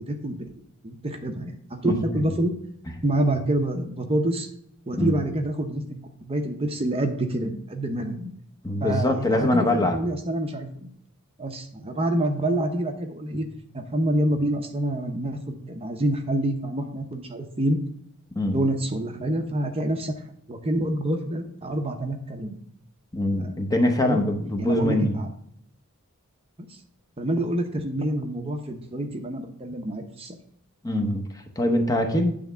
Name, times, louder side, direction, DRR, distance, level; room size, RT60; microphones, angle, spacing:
voice 1, 0.1-0.5 0.8-2.5 3.0-4.5 4.9-8.3 8.8-10.9 11.4-13.5 13.7-17.8 18.4-20.1 20.5-22.6 23.3-24.2 24.6-25.3 26.7-26.8 27.2-30.4, right 1 dB, 25° right, 4 dB, 0.8 m, -27 dB
voice 2, 1.8-2.2 5.0-5.2 8.6-10.0 18.3-18.6 23.1-25.2 30.8-32.3, left 1 dB, 15° left, 3 dB, 0.9 m, -23 dB
8.8 x 3.5 x 6.8 m, 0.69 s
head